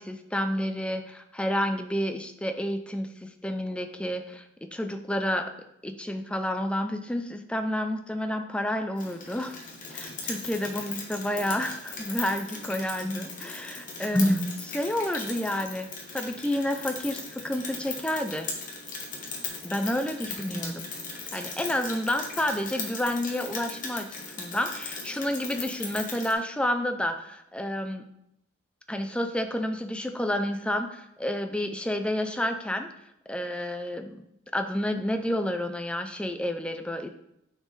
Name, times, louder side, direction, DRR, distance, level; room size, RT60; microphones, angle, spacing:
voice 1, 0.0-5.5 5.8-9.6 9.9-15.9 16.1-18.5 19.6-20.8 21.3-28.0 28.9-32.9 33.3-34.2 34.5-37.1, left 1 dB, 5° left, 6 dB, 0.4 m, -30 dB
Rain, 9.0-26.3, left 4 dB, 40° left, 1.1 m, -38 dB
9.3 x 4.4 x 3.2 m, 0.79 s
head